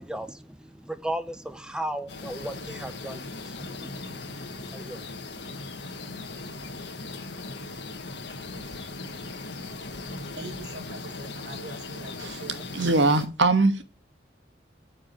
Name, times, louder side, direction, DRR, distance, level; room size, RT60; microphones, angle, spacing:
voice 1, 0.0-6.2, right 1 dB, 5° right, 0.7 m, -37 dB
sound 1, 2.1-13.3, left 3 dB, 65° left, 1.6 m, -38 dB
voice 2, 10.4-12.7, right 2 dB, 55° right, 1.9 m, -42 dB
voice 3, 12.7-13.8, right 3 dB, 80° right, 1.4 m, -22 dB
9.6 x 4.9 x 7.1 m
head